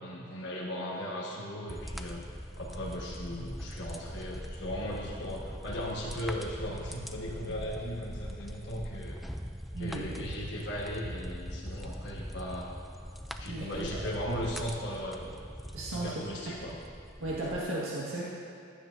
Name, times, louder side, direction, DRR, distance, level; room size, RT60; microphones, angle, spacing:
voice 1, 0.0-2.2 2.6-9.2 9.8-12.7 13.4-15.3 15.9-16.7, equal, 60° left, -6 dB, 1.4 m, -37 dB
sound 1, 1.7-17.6, equal, ahead, 0.3 m, -42 dB
voice 2, 9.7-10.1 13.5-14.0 15.7-16.5 17.2-18.2, right 2 dB, 85° right, -6 dB, 1.7 m, -36 dB
15.0 x 10.5 x 2.6 m, 2.6 s
head